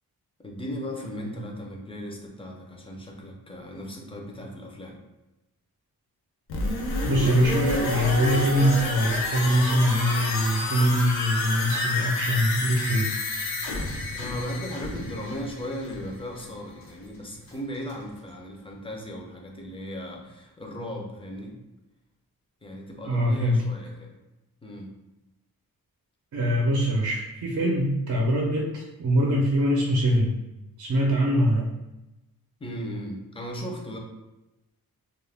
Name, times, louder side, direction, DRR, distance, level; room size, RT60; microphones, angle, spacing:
voice 1, 0.4-5.0 14.1-21.6 22.6-24.1 24.6-24.9 32.6-34.0, equal, 15° left, 0 dB, 0.5 m, -36 dB
sound 1, 6.5-16.2 16.5-16.6, left 2 dB, 85° left, 0.6 m, -30 dB
voice 2, 7.0-13.1 23.0-23.6 26.3-30.3 30.8-31.7, equal, 55° right, -2 dB, 0.6 m, -23 dB
sound 2, 7.5-12.9 13.2-13.3 14.0-14.2 14.7-14.8 15.4-16.0 16.3-18.8, right 3 dB, 60° left, 0.9 m, -40 dB
2.4 x 2.1 x 3.3 m, 0.99 s
wide cardioid pair, 110°, 37 cm